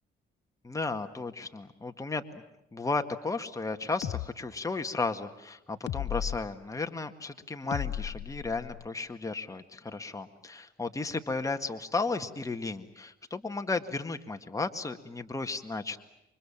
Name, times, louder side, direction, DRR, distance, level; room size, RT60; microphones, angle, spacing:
voice 1, 0.6-2.4 2.7-16.0, left 3 dB, 15° left, 6 dB, 1.9 m, -34 dB
sound 1, 4.0-4.3 5.9-6.4 7.7-8.9, left 11 dB, 70° left, 1.0 m, -34 dB
29.0 x 24.5 x 7.4 m, 0.85 s
cardioid pair, 90°, 20 cm